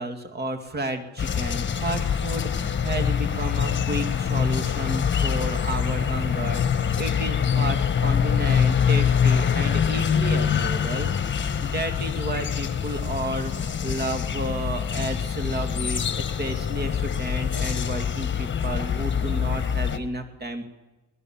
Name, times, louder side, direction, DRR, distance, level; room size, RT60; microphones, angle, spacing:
voice 1, 0.0-11.1 11.4-20.7, right 1 dB, 35° right, 6 dB, 2.4 m, -32 dB
sound 1, 1.2-20.0, left 7 dB, 40° left, 1.5 m, -24 dB
23.5 x 19.5 x 7.4 m, 1.1 s
cardioid pair, 90°, 30 cm